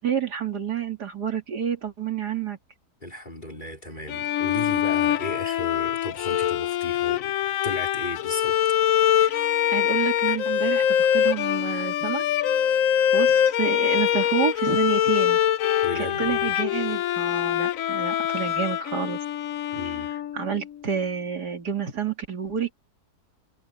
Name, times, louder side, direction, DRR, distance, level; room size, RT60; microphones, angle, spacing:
voice 1, 0.0-2.6 9.2-9.4 9.7-12.3 13.1-15.4 15.9-19.2 20.3-22.7, right 7 dB, 75° right, 2.9 m, -29 dB
voice 2, 3.0-8.6 15.8-16.5 19.7-20.1, left 1 dB, 30° left, 4.6 m, -35 dB
Bowed string instrument, 4.1-20.6, left 10 dB, 65° left, 1.0 m, -24 dB
omnidirectional pair, 1.7 m